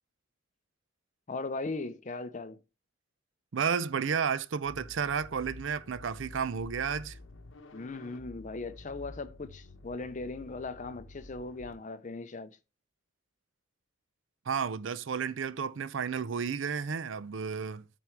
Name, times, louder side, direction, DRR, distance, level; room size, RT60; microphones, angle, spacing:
voice 1, 1.3-2.6 7.7-12.5, left 3 dB, 40° left, 0.7 m, -38 dB
voice 2, 3.5-7.2 14.5-17.9, right 6 dB, 70° right, 0.5 m, -32 dB
sound 1, 4.6-11.7, left 2 dB, 75° left, 1.0 m, -50 dB
8.4 x 4.4 x 4.6 m
head